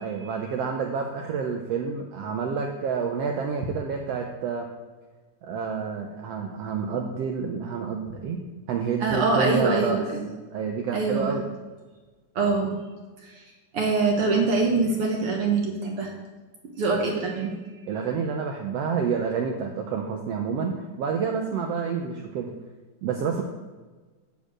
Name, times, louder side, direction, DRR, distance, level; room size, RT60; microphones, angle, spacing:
voice 1, 0.0-4.7 5.4-8.4 8.7-10.0 10.5-11.4 17.9-22.5 23.0-23.4, right 6 dB, 85° right, 3 dB, 1.4 m, -28 dB
voice 2, 9.0-10.2 10.9-11.3 12.3-12.7 13.7-16.1 16.8-17.6, right 3 dB, 60° right, 0 dB, 1.6 m, -24 dB
10.0 x 4.4 x 7.6 m, 1.3 s
omnidirectional pair, 3.7 m